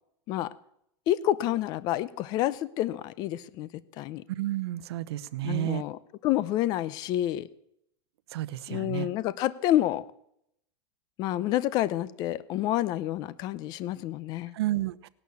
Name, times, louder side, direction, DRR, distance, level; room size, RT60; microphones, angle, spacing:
voice 1, 1.1-3.7 4.0-4.2 5.4-7.5 8.7-10.0 11.2-14.5, left 13 dB, 30° left, 18 dB, 0.6 m, -28 dB
voice 2, 4.3-5.8 8.3-9.1 14.5-15.1, right 14 dB, 70° right, 16 dB, 0.9 m, -31 dB
18.0 x 11.5 x 7.0 m, 0.74 s
supercardioid pair, 165°, 14 cm